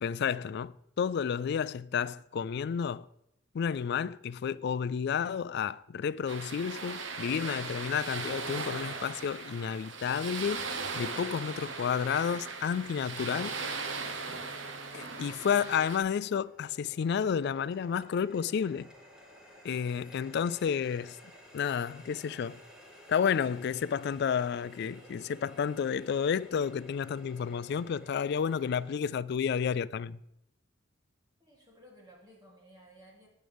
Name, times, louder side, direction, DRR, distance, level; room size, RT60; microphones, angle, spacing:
voice 1, 0.0-3.1 3.5-10.7 10.9-13.6 14.9-18.9 19.6-21.2 21.5-22.6 23.1-30.2, left 7 dB, 55° left, 0.3 m, -31 dB
sound 1, 6.3-16.0, right 4 dB, 75° right, 1.1 m, -38 dB
Bowed string instrument, 12.5-16.3, right 3 dB, 55° right, 1.3 m, -55 dB
Water tap faucet, 13.9-29.0, equal, 5° right, 2.4 m, -55 dB
voice 2, 31.4-33.3, equal, 20° right, 3.0 m, -56 dB
15.0 x 9.1 x 3.5 m
head